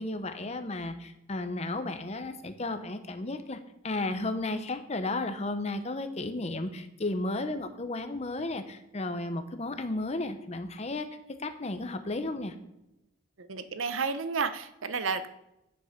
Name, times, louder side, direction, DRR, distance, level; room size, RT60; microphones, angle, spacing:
voice 1, 0.0-11.1 11.4-12.5, left 2 dB, 35° left, 9 dB, 0.8 m, -33 dB
voice 2, 13.4-15.3, right 5 dB, 75° right, 11 dB, 0.7 m, -31 dB
9.7 x 5.6 x 5.1 m, 0.89 s
head